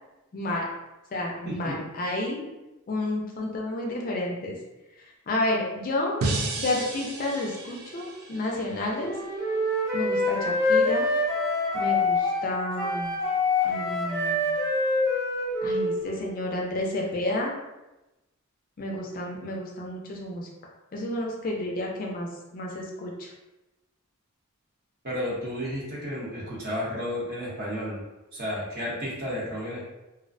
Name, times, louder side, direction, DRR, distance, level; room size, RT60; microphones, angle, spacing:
voice 1, 0.3-0.7 1.1-2.5 2.9-4.6 5.3-6.2 6.6-9.2 9.9-11.1 11.7-13.2 13.6-14.5 15.6-17.5 18.8-20.5 20.9-23.3, left 1 dB, 40° left, -1 dB, 0.4 m, -31 dB
voice 2, 1.4-1.8 25.0-28.0 28.3-29.9, equal, 45° right, -5 dB, 0.8 m, -32 dB
sound 1, 6.2-9.3, right 3 dB, 90° right, 0.4 m, -33 dB
Wind instrument woodwind instrument, 8.9-16.4, left 2 dB, ahead, 0.8 m, -26 dB
2.4 x 2.1 x 2.5 m, 1.0 s
head